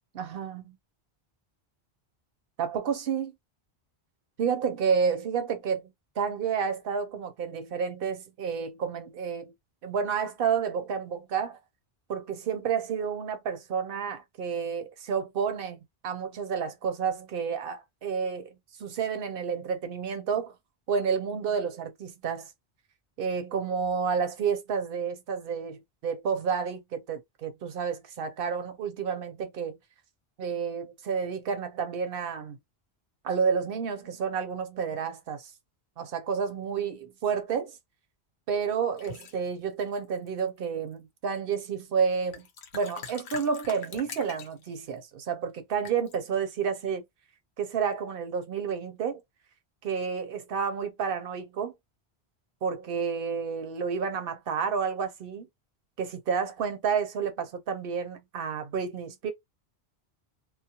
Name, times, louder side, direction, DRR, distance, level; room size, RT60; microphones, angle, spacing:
voice 1, 0.1-0.8 2.6-3.3 4.4-5.8 6.2-9.5 9.8-11.6 12.1-20.5 20.9-22.5 23.2-29.8 30.4-32.6 33.2-35.5 36.0-37.8 38.5-42.5 42.7-47.0 47.6-49.2 49.8-51.7 52.6-55.5 56.0-59.3, right 6 dB, 65° right, 0.8 m, -30 dB
sound 1, 39.0-39.4 40.1-40.6 42.0-42.1 42.3-44.8 45.8-46.2, left 5 dB, 85° left, 0.9 m, -43 dB
2.3 x 2.0 x 2.8 m
omnidirectional pair, 1.1 m